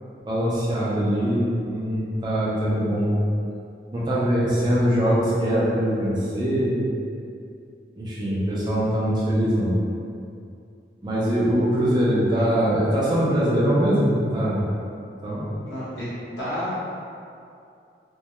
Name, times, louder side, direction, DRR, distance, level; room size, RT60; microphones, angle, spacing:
voice 1, 0.3-3.2 3.9-6.9 8.0-9.7 11.0-14.7 15.2-15.5, equal, 25° right, -7 dB, 0.4 m, -22 dB
voice 2, 15.6-16.1 16.4-16.7, equal, 75° left, -12 dB, 0.8 m, -31 dB
2.2 x 2.1 x 2.9 m, 2.5 s
head